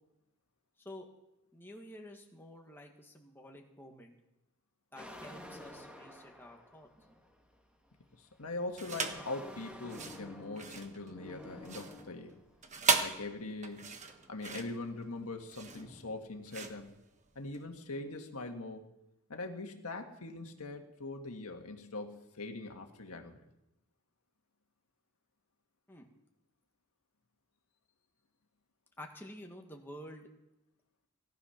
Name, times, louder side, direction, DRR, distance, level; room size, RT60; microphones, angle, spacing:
voice 1, 1.5-4.1 4.9-6.9 25.9-26.1 29.0-30.3, left 1 dB, 10° left, 1 dB, 1.6 m, -50 dB
sound 1, 4.9-7.6 8.4-12.5 13.3-13.5 13.9-15.1 15.6-16.2, left 1 dB, 5° right, 1.7 m, -51 dB
voice 2, 8.1-12.4 13.0-13.9 14.3-16.9 17.3-18.9 19.3-23.4, left 2 dB, 75° left, 4 dB, 1.7 m, -42 dB
sound 2, 8.8-9.3 9.8-17.6, right 5 dB, 30° right, 1.2 m, -36 dB
17.5 x 12.0 x 5.8 m, 0.92 s
head